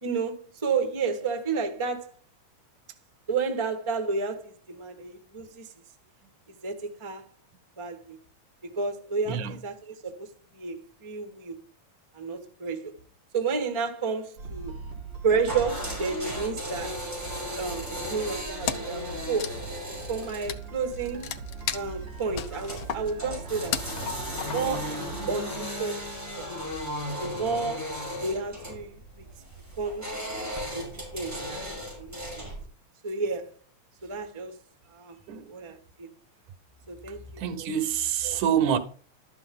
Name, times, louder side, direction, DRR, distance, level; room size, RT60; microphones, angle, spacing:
voice 1, 0.0-2.1 3.3-5.7 6.6-7.3 7.8-8.2 8.6-11.6 12.1-12.9 13.3-14.8 15.2-17.0 17.6-19.6 20.1-21.3 21.7-25.0 25.3-26.5 27.2-29.2 29.8-30.1 30.7-31.7 32.0-32.5 33.0-33.5 34.0-34.6 34.9-35.2 35.5-36.1 36.9-37.7 38.2-38.8, right 4 dB, 20° right, 0.7 m, -31 dB
sound 1, 14.4-25.6, right 5 dB, 40° right, 3.4 m, -42 dB
sound 2, 15.5-32.6, equal, 5° right, 5.8 m, -36 dB
Wood, 18.6-19.0 19.3-24.9, left 9 dB, 80° left, 1.1 m, -35 dB
voice 2, 37.4-38.8, right 9 dB, 85° right, 2.5 m, -26 dB
12.5 x 11.0 x 3.8 m
omnidirectional pair, 3.3 m